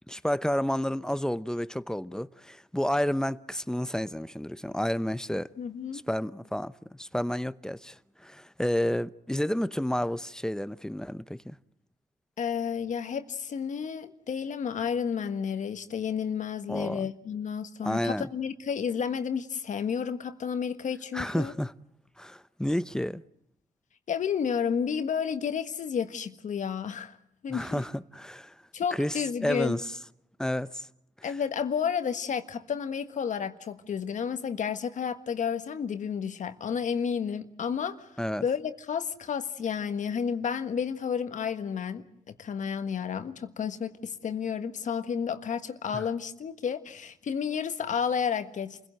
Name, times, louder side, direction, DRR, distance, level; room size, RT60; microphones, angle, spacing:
voice 1, 0.1-5.5 5.9-11.6 16.7-17.1 17.8-18.3 21.1-21.7 22.2-23.2 27.5-28.6 28.9-30.0 30.4-30.9 31.2-31.3 38.2-38.4 45.9-46.0, equal, 5° left, 0.8 m, -30 dB
voice 2, 5.6-6.0 12.4-21.5 24.1-27.2 27.4-27.8 28.7-29.8 31.2-42.0 42.4-48.9, left 7 dB, 65° left, 1.6 m, -31 dB
28.0 x 16.5 x 7.8 m
cardioid pair, 65°, 14 cm